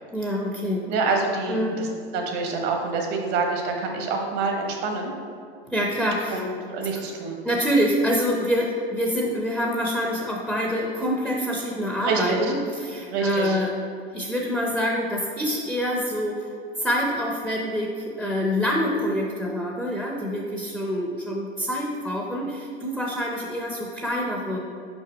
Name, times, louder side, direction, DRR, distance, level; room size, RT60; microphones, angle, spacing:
voice 1, 0.1-0.8 1.5-1.8 5.7-6.4 7.4-13.7 14.1-16.5 16.8-24.6, equal, ahead, -2 dB, 0.6 m, -26 dB
voice 2, 0.8-1.9 2.1-5.1 6.3-7.4 12.0-12.4 13.1-13.6, right 4 dB, 55° right, 1 dB, 1.3 m, -26 dB
5.2 x 5.0 x 4.2 m, 2.3 s
hypercardioid pair, 110°, 32 cm